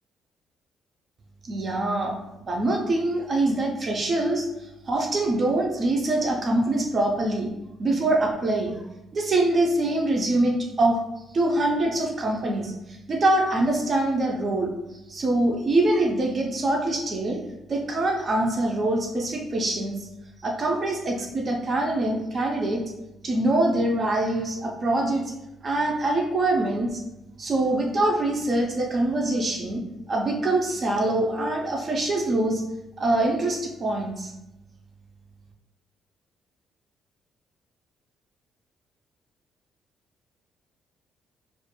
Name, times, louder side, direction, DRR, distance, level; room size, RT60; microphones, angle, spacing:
voice 1, 1.4-2.2 2.5-7.5 7.8-8.8 9.1-11.0 11.3-14.7 15.1-17.4 17.7-20.1 20.4-22.8 23.2-25.2 25.6-27.0 27.4-29.8 30.1-32.6 33.0-34.3, right 2 dB, 30° right, 0 dB, 0.3 m, -24 dB
2.3 x 2.2 x 2.9 m, 0.93 s
cardioid pair, 155°, 0 cm